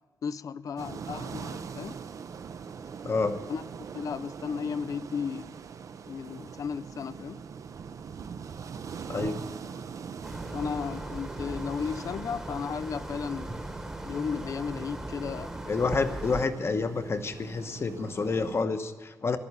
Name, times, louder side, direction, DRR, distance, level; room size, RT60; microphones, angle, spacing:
voice 1, 0.2-2.0 3.5-3.6 3.9-5.6 6.1-7.4 10.5-13.6 14.0-15.5, left 6 dB, 70° left, 0.4 m, -34 dB
sound 1, 0.8-18.7, right 6 dB, 65° right, 0.6 m, -42 dB
voice 2, 3.0-3.4 9.1-9.4 15.7-19.4, left 4 dB, 45° left, 1.0 m, -29 dB
sound 2, 10.2-16.5, right 1 dB, 10° right, 1.1 m, -38 dB
13.5 x 11.5 x 8.3 m
wide cardioid pair, 115°, 6 cm